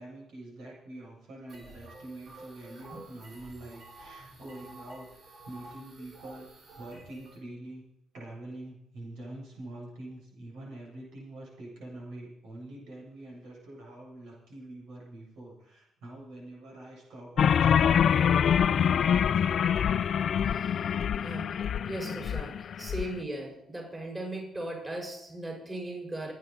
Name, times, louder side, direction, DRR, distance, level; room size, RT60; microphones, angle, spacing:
voice 1, 0.0-7.8 8.1-19.6, right 1 dB, 85° right, -3 dB, 7.3 m, -45 dB
sound 1, 1.5-7.4, right 2 dB, 65° right, 7.0 m, -50 dB
sound 2, 17.4-23.1, left 8 dB, 60° left, 0.4 m, -25 dB
voice 2, 20.4-21.6 21.9-26.3, right 1 dB, 20° right, 0 dB, 5.4 m, -38 dB
25.0 x 9.3 x 4.2 m, 0.78 s
cardioid pair, 90°, 0 cm